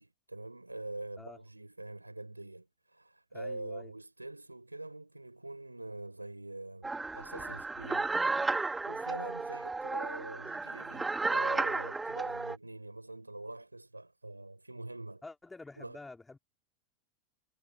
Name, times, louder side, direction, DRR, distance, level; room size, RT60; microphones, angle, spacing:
voice 1, 0.0-8.1 8.4-8.6 8.9-15.2 15.8-16.0, right 2 dB, 90° right, 6.8 m, -45 dB
voice 2, 3.3-3.9 15.2-16.4, left 3 dB, 10° left, 4.4 m, -48 dB
sound 1, 6.8-12.6, right 3 dB, 10° right, 2.3 m, -33 dB
figure-of-eight pair, 85°, 0 cm